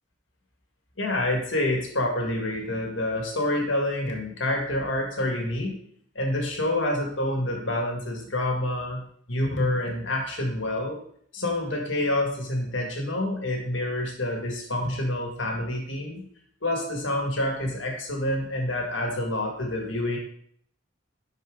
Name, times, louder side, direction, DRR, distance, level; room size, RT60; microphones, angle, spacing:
voice 1, 1.0-5.8 6.2-11.0 11.3-16.2 16.6-20.2, left 1 dB, 80° left, 1 dB, 1.9 m, -27 dB
11.0 x 4.6 x 3.8 m, 0.64 s
head